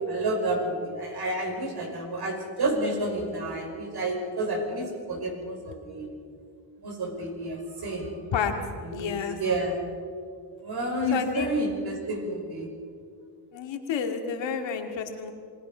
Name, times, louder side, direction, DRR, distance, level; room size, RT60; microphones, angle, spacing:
voice 1, 0.0-6.1 6.8-8.1 8.8-9.8 10.6-12.7, right 1 dB, 60° right, 2 dB, 5.7 m, -30 dB
voice 2, 8.9-9.4 11.1-11.5 13.5-15.3, left 6 dB, 90° left, 5 dB, 2.2 m, -30 dB
27.5 x 18.5 x 5.6 m, 2.2 s
cardioid pair, 90°, 43 cm